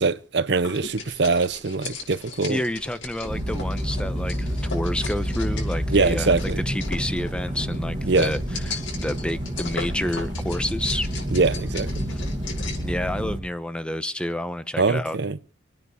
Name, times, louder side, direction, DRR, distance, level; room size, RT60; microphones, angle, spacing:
voice 1, 0.0-2.6 5.9-6.6 8.0-8.3 11.3-12.1 14.8-15.4, right 4 dB, 60° right, 0.7 m, -23 dB
sound 1, 0.6-12.9, left 4 dB, 80° left, 5.9 m, -38 dB
voice 2, 2.5-6.3 6.7-11.1 12.1-12.2 12.8-15.2, left 1 dB, 5° left, 0.9 m, -29 dB
sound 2, 3.3-13.4, equal, 25° right, 2.0 m, -29 dB
26.5 x 9.6 x 5.0 m
head